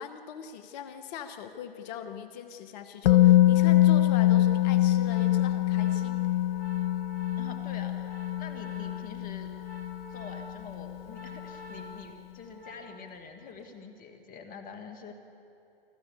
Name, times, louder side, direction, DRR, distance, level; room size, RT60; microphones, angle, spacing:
voice 1, 0.0-6.2, left 7 dB, 45° left, 9 dB, 1.2 m, -41 dB
Musical instrument, 3.1-11.0 11.2-11.4, left 14 dB, 80° left, 0.6 m, -24 dB
Organ, 3.4-13.2 13.5-13.8, left 1 dB, 65° right, 3.2 m, -48 dB
voice 2, 7.4-9.5 10.1-15.1, left 5 dB, 30° left, 6 dB, 2.1 m, -46 dB
25.0 x 14.5 x 8.3 m, 2.7 s
hypercardioid pair, 115°, 29 cm